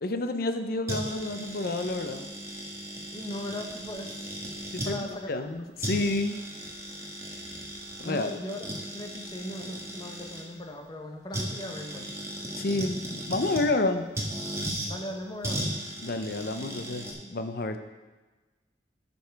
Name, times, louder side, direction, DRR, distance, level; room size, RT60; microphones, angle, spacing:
voice 1, 0.0-2.3 4.7-6.4 8.0-8.3 12.5-14.0 16.0-17.8, left 2 dB, 55° left, 7 dB, 0.7 m, -29 dB
sound 1, 0.9-4.9 5.5-5.6 5.8-10.4 11.3-13.7 14.1-14.9 15.4-17.1, right 1 dB, 15° right, 1.4 m, -36 dB
voice 2, 3.1-4.2 4.8-5.4 8.0-8.6 8.9-12.1 14.8-15.7, left 1 dB, 25° left, 3 dB, 0.9 m, -38 dB
11.0 x 5.4 x 4.6 m, 1.2 s
head